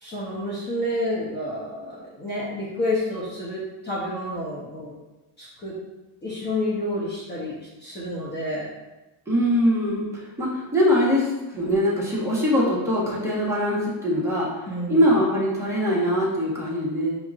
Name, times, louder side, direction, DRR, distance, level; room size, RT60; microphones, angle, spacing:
voice 1, 0.0-4.9 5.4-5.7 6.2-8.7 14.7-15.2, left 1 dB, 20° left, -8 dB, 1.0 m, -29 dB
voice 2, 9.3-17.1, equal, 5° right, -7 dB, 1.4 m, -22 dB
6.7 x 2.9 x 2.5 m, 1.1 s
cardioid pair, 120°, 47 cm